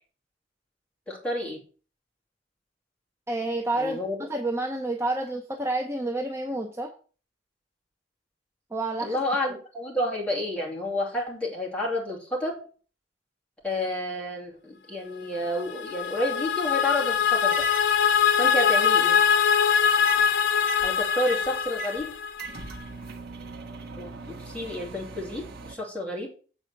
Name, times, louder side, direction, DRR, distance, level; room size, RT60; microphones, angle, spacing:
voice 1, 1.1-1.6 3.8-4.2 9.0-12.5 13.6-17.7 18.4-19.2 20.8-22.1 24.0-26.3, left 1 dB, 5° left, -3 dB, 2.5 m, -30 dB
voice 2, 3.3-6.9 8.7-9.2, right 2 dB, 15° right, 3 dB, 0.7 m, -29 dB
sound 1, 15.4-22.6, left 7 dB, 70° left, 0.8 m, -23 dB
sound 2, 17.5-17.9 20.0-20.3 20.6-25.8, right 5 dB, 55° right, 1.0 m, -40 dB
7.7 x 4.1 x 6.5 m, 0.39 s
head